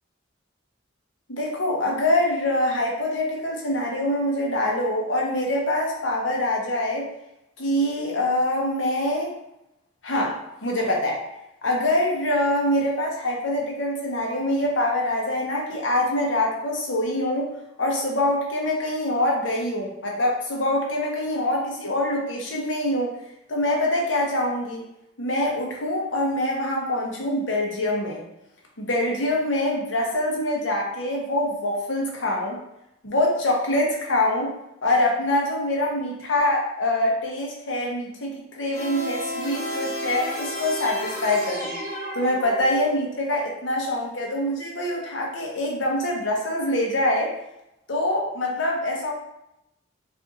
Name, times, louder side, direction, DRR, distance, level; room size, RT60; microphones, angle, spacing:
voice 1, 1.3-7.1 7.6-9.3 10.0-11.2 11.6-17.5 17.8-23.1 23.5-24.8 25.2-28.2 28.8-32.6 33.0-34.5 34.8-41.7 42.1-47.3 47.9-49.1, left 1 dB, 70° left, -1 dB, 1.0 m, -24 dB
sound 1, 38.7-43.1, equal, 35° left, 1.0 m, -32 dB
4.2 x 2.7 x 3.9 m, 0.85 s
head